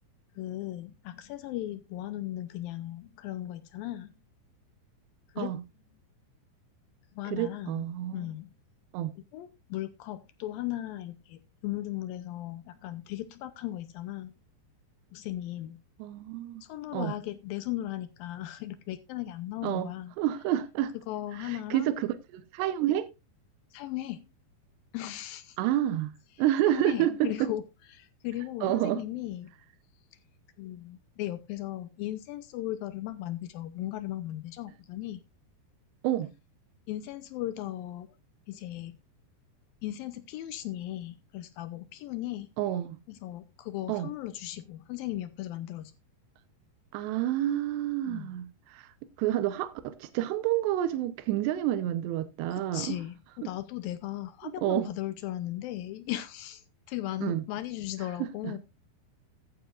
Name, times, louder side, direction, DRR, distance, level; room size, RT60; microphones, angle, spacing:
voice 1, 0.4-4.1 5.3-5.5 7.2-7.9 8.1-8.5 9.3-14.3 15.1-15.8 16.6-20.1 21.1-21.9 23.7-24.2 24.9-25.6 26.7-27.6 27.9-29.5 30.6-35.2 36.9-38.1 38.5-39.0 39.8-42.5 43.1-45.9 48.0-48.3 52.5-56.6 56.9-58.6, left 14 dB, 75° left, 2.2 m, -37 dB
voice 2, 7.3-8.3 8.9-9.1 16.0-16.6 16.9-17.1 19.6-19.9 20.2-20.9 21.4-23.1 25.6-26.1 26.4-27.5 28.6-29.0 36.0-36.3 42.6-43.0 43.9-44.1 46.9-53.0 53.4-53.5 54.4-54.9 57.2-57.4 58.2-58.6, right 12 dB, 90° right, 3.0 m, -29 dB
14.5 x 10.0 x 2.4 m
omnidirectional pair, 4.8 m